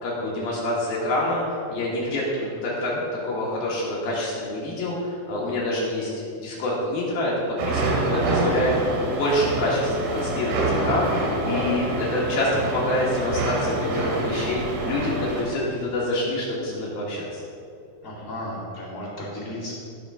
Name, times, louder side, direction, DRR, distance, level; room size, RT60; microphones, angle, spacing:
voice 1, 0.0-2.9 3.2-6.1 6.4-7.3 7.6-17.4, left 1 dB, 60° left, -5 dB, 2.9 m, -26 dB
voice 2, 2.0-2.5 2.9-3.0 11.2-11.7 12.3-12.4 18.0-19.7, left 1 dB, 30° left, -8 dB, 1.5 m, -34 dB
sound 1, 7.6-15.4, right 2 dB, 85° right, 4.1 m, -26 dB
17.0 x 6.5 x 3.6 m, 2.6 s
omnidirectional pair, 5.5 m